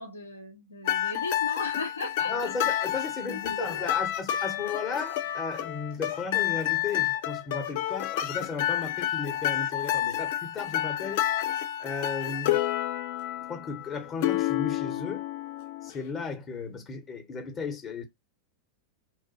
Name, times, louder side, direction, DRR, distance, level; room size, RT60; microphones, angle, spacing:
voice 1, 0.0-2.5 3.3-4.1, left 2 dB, 80° left, 0.7 m, -37 dB
sound 1, 0.8-16.0, left 12 dB, 50° left, 0.4 m, -29 dB
voice 2, 2.2-11.2 11.8-12.6 13.5-15.2 15.8-18.0, left 4 dB, 25° left, 0.8 m, -35 dB
2.4 x 2.1 x 2.7 m
figure-of-eight pair, 90°, 0 cm